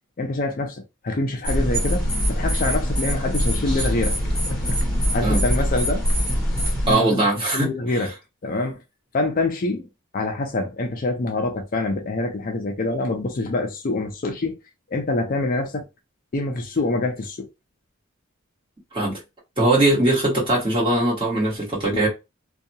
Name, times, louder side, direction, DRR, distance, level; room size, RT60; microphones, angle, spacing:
voice 1, 0.2-4.2 4.5-4.8 5.1-6.0 6.9-7.2 7.5-8.1 8.4-8.8 9.1-9.9 10.1-14.5 14.9-15.9 16.3-17.5, left 2 dB, 40° left, 0.5 m, -25 dB
sound 1, 1.4-6.9, equal, 5° left, 1.1 m, -23 dB
voice 2, 6.9-8.1 18.9-19.2 19.6-22.1, right 2 dB, 25° right, 1.4 m, -21 dB
2.7 x 2.3 x 2.7 m
head